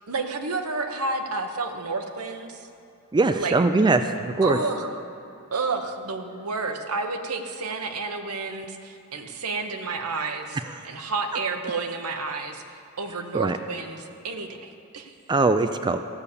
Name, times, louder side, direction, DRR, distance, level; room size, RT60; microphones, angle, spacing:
voice 1, 0.1-2.7 3.3-3.6 4.4-5.0 5.5-15.1, right 3 dB, 85° right, 6 dB, 1.0 m, -30 dB
voice 2, 3.1-4.6 13.3-13.6 15.3-16.0, right 3 dB, 20° right, 9 dB, 0.4 m, -21 dB
15.0 x 7.0 x 6.8 m, 2.8 s
head